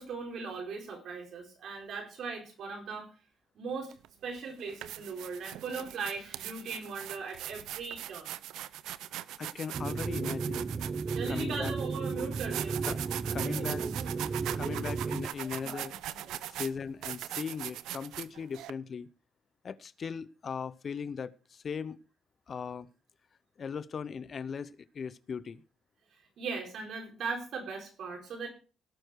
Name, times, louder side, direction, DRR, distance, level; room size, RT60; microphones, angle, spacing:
voice 1, 0.0-3.1 3.5-3.9 4.2-8.3 11.1-12.8 13.3-15.0 15.4-16.6 26.4-28.5, right 4 dB, 65° right, 2 dB, 4.2 m, -39 dB
sound 1, 3.9-4.1 4.6-18.7, right 13 dB, 90° right, 0.5 m, -40 dB
voice 2, 9.4-10.6 11.3-11.7 12.9-13.0 13.2-13.8 14.5-15.9 16.5-19.1 19.6-22.0 22.5-22.9 23.6-25.6, left 6 dB, 45° left, 16 dB, 0.7 m, -38 dB
sound 2, 9.7-15.3, right 4 dB, 40° right, 0.6 m, -34 dB
18.5 x 6.4 x 4.7 m, 0.35 s
cardioid pair, 90°, 0 cm